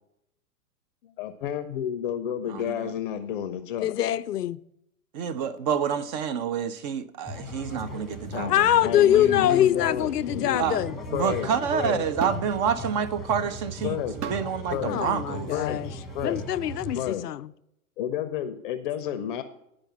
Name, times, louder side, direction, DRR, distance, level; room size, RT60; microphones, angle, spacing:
voice 1, 1.0-4.0 8.3-8.5 8.8-10.6 10.9-12.0 13.8-14.2 14.7-15.0 15.5-16.4 16.9-17.2 18.0-19.4, left 10 dB, 35° left, 0.6 m, -31 dB
voice 2, 2.5-2.9 5.1-8.8 9.1-9.6 10.5-10.8 11.1-15.5, right 7 dB, 30° right, 0.5 m, -28 dB
voice 3, 3.8-4.6 8.5-10.9 14.9-15.9 16.2-17.5, left 11 dB, 90° left, 0.5 m, -23 dB
sound 1, 7.3-17.1, equal, ahead, 1.1 m, -38 dB
sound 2, 12.2-12.6 14.2-14.5 15.6-15.8, right 7 dB, 75° right, 0.9 m, -34 dB
10.5 x 5.0 x 7.3 m
hypercardioid pair, 120°, 46 cm